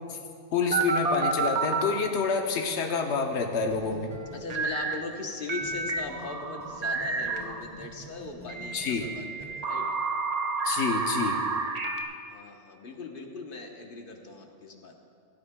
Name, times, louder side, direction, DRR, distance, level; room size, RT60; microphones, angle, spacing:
voice 1, 0.5-4.1 8.7-9.1 10.6-11.4, left 5 dB, 85° left, 3 dB, 1.1 m, -28 dB
sound 1, 0.7-1.9 4.5-5.0 5.5-7.6 8.5-12.0, right 4 dB, 40° right, 0.7 m, -30 dB
sound 2, 3.7-6.3 6.6-9.5, left 1 dB, 5° left, 1.3 m, -47 dB
voice 2, 4.3-9.9 12.3-15.0, left 3 dB, 55° left, 2 dB, 1.2 m, -39 dB
17.0 x 12.5 x 2.2 m, 2.3 s
omnidirectional pair, 1.1 m